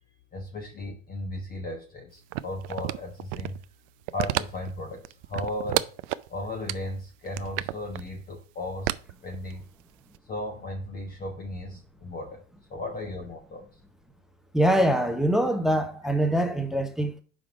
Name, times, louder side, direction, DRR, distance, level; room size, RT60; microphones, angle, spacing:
voice 1, 0.3-3.6 4.1-5.9 6.3-9.0 9.2-9.7 10.3-12.4 12.7-13.6, left 1 dB, 25° left, 1.2 m, -36 dB
sound 1, 2.3-3.6 4.0-4.7 5.0-6.3 6.7-6.8 7.3-8.0 8.9-9.8 10.1-10.2, right 18 dB, 45° right, 0.4 m, -30 dB
voice 2, 14.5-17.2, right 1 dB, ahead, 0.8 m, -24 dB
5.2 x 4.9 x 6.0 m
hypercardioid pair, 85°, 39 cm